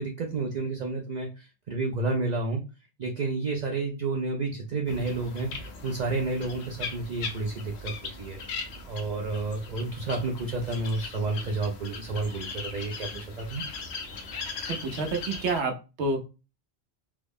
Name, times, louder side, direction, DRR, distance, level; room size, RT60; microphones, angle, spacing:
voice 1, 0.0-2.6 3.0-8.4 8.9-13.6, right 3 dB, 55° right, 2 dB, 0.5 m, -30 dB
sound 1, 4.9-15.6, left 4 dB, 80° left, 0.9 m, -39 dB
voice 2, 14.7-16.2, right 3 dB, 85° right, 5 dB, 1.0 m, -29 dB
3.4 x 2.0 x 3.5 m, 0.31 s
omnidirectional pair, 1.1 m